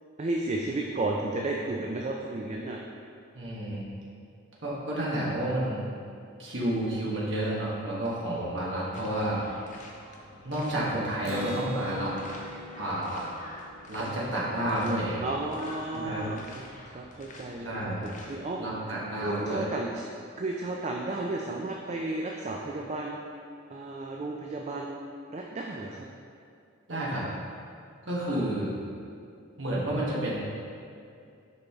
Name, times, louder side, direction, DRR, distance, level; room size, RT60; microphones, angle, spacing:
voice 1, 0.2-2.8 3.7-3.8 15.2-18.6 19.2-20.0 20.4-23.2 23.7-25.0 25.3-26.1 28.3-28.4, right 2 dB, 30° right, -1 dB, 0.4 m, -33 dB
voice 2, 3.3-3.9 4.6-5.8 6.4-9.4 10.4-12.1 12.8-13.3 13.9-15.2 15.9-16.2 17.6-18.0 18.6-19.7 26.9-27.2 28.0-28.7 29.6-30.4, right 1 dB, 55° right, -6 dB, 1.3 m, -30 dB
sound 1, 8.9-18.5, left 2 dB, 35° left, 0.6 m, -48 dB
Acoustic guitar, 11.2-14.9, equal, 85° right, 0.7 m, -40 dB
6.8 x 5.3 x 3.6 m, 2.4 s
head